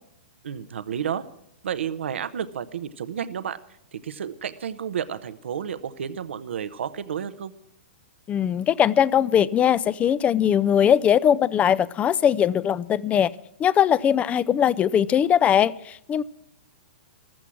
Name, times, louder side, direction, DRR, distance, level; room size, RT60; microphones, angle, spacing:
voice 1, 0.4-1.2 1.6-3.6 3.9-7.5, right 8 dB, 80° right, 13 dB, 0.9 m, -31 dB
voice 2, 8.3-13.3 13.6-16.2, left 9 dB, 20° left, 20 dB, 0.5 m, -20 dB
15.0 x 13.0 x 6.2 m, 0.75 s
hypercardioid pair, 130°, 6 cm